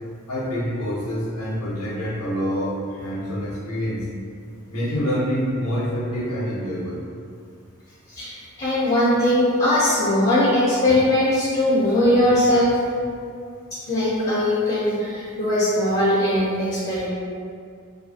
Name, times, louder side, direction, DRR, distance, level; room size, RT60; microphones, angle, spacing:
voice 1, 0.3-4.0 4.7-7.0, equal, 80° left, -5 dB, 0.6 m, -26 dB
voice 2, 8.1-12.8 13.9-17.1, left 1 dB, 25° left, -8 dB, 0.5 m, -20 dB
2.6 x 2.4 x 2.6 m, 2.3 s
head